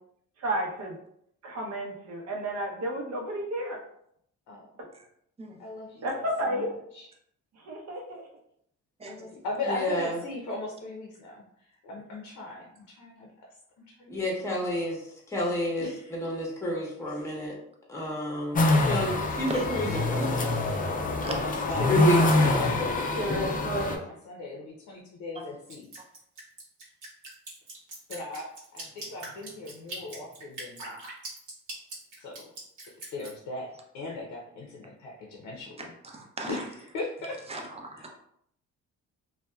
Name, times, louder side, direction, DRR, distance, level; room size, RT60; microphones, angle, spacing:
voice 1, 0.4-0.9 1.4-3.8 6.0-6.7 7.7-8.2 21.8-22.2 23.2-23.9, right 1 dB, 60° right, 0 dB, 0.7 m, -32 dB
voice 2, 5.6-7.1 9.1-11.4 11.8-13.3 13.9-14.1 15.8-16.2 17.2-17.3 21.3-22.2 22.6-25.9 28.1-28.5 28.7-31.0 32.2-32.5 33.1-35.9 36.5-37.4, left 2 dB, 75° left, -1 dB, 0.6 m, -38 dB
voice 3, 9.7-10.2 14.1-15.0 15.3-17.5 17.9-20.5 21.9-22.6, equal, 10° left, -2 dB, 0.8 m, -30 dB
sound 1, 18.5-24.0, left 2 dB, 30° left, 0.4 m, -25 dB
Drip, 25.7-33.3, right 2 dB, 80° right, 1.0 m, -41 dB
voice 4, 36.1-36.6 37.5-38.1, right 2 dB, 20° right, 1 dB, 0.5 m, -37 dB
2.7 x 2.2 x 2.2 m, 0.72 s
cardioid pair, 90°, 30 cm